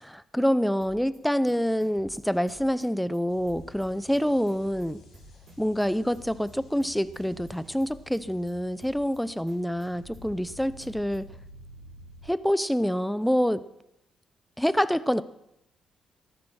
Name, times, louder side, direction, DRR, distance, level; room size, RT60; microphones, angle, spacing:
voice 1, 0.0-5.0 5.6-11.3 12.2-13.6 14.6-15.2, equal, ahead, 15 dB, 0.7 m, -26 dB
Hip-hop, 0.8-1.2 1.5-3.2 3.5-3.9 4.1-5.9 6.1-6.5 6.8-8.5 8.8-9.2 9.5-11.2, right 2 dB, 55° right, 5.9 m, -53 dB
sound 1, 3.3-12.3, left 1 dB, 75° left, 7.6 m, -51 dB
18.0 x 13.5 x 4.3 m, 0.83 s
cardioid pair, 80°, 0 cm